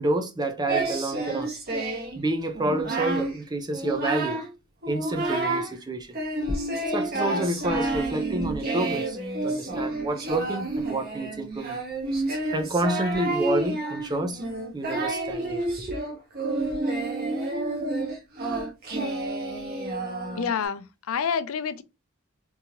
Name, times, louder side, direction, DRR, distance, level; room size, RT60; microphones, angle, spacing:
voice 1, 0.0-1.5 2.2-4.4 4.9-6.2 6.9-11.8 12.5-14.4 14.7-16.0, right 1 dB, 20° right, 0.5 m, -29 dB
Singing, 0.7-2.2 2.5-3.3 3.7-4.5 4.8-5.7 6.1-20.6, right 2 dB, 45° right, 1.2 m, -29 dB
voice 2, 20.4-21.8, left 6 dB, 75° left, 0.5 m, -28 dB
3.6 x 2.8 x 2.8 m
head